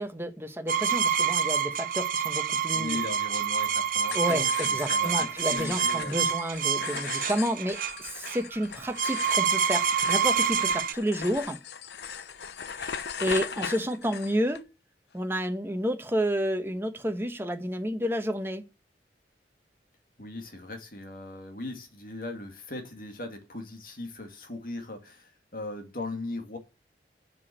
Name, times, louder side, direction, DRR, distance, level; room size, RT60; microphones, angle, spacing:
voice 1, 0.0-3.0 4.1-11.6 12.8-14.6 15.1-18.6, equal, 15° right, 1.2 m, -30 dB
sound 1, 0.7-10.9, right 7 dB, 50° right, 0.6 m, -27 dB
voice 2, 2.7-6.2 20.2-26.6, left 2 dB, 50° left, 2.2 m, -38 dB
sound 2, 4.0-14.6, left 7 dB, 70° left, 0.7 m, -39 dB
7.4 x 6.2 x 7.7 m
head